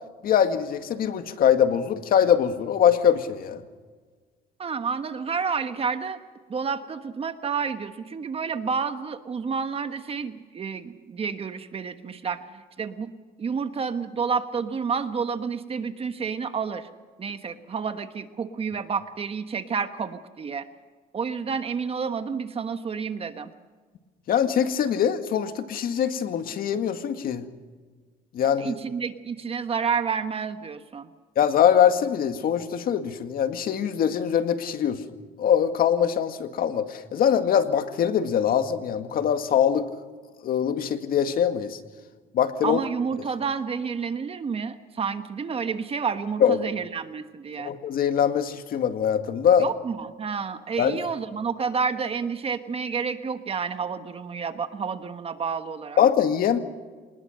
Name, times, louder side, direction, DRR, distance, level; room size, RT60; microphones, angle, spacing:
voice 1, 0.2-3.6 24.3-27.5 28.3-28.8 31.4-35.0 35.4-39.9 40.4-41.8 42.3-42.8 46.4-46.6 47.6-49.7 50.8-51.0 56.0-56.6, left 8 dB, 60° left, 8 dB, 2.0 m, -23 dB
voice 2, 4.6-6.2 6.5-13.1 13.4-16.9 17.2-20.7 21.1-23.5 28.6-31.1 42.6-47.7 49.6-56.0, right 6 dB, 35° right, 9 dB, 1.3 m, -30 dB
26.5 x 19.5 x 6.5 m, 1.4 s
cardioid pair, 110°, 17 cm